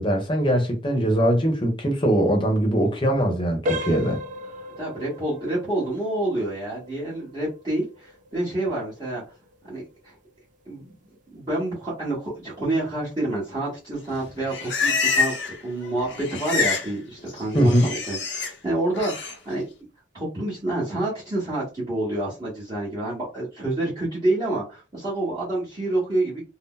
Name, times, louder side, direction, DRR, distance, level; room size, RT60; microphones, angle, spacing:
voice 1, 0.0-4.2 17.5-17.9, equal, 30° left, 0.8 m, -21 dB
sound 1, 3.6-14.3 14.7-14.9 15.5-15.6 16.1-16.2, left 1 dB, 45° right, 0.4 m, -38 dB
voice 2, 4.8-9.2 9.6-10.1 10.7-10.8 11.3-19.7 20.1-26.4, right 2 dB, 25° right, 1.1 m, -28 dB
Livestock farm animals working animals, 14.2-15.6 15.8-16.9 17.2-18.5 18.9-19.3, left 4 dB, 85° left, 0.7 m, -26 dB
2.7 x 2.0 x 3.7 m
head